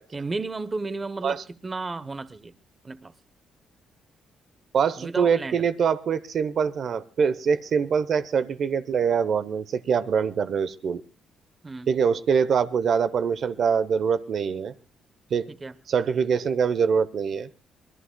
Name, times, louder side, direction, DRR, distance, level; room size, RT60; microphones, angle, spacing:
voice 1, 0.1-2.5 2.8-3.1 5.0-5.6 11.6-11.9 15.5-15.7, right 3 dB, 25° right, 0.9 m, -33 dB
voice 2, 4.7-11.0 11.9-14.7 15.3-15.5 15.9-17.5, right 6 dB, 60° right, 0.8 m, -24 dB
25.5 x 20.0 x 2.2 m
cardioid pair, 90°, 0 cm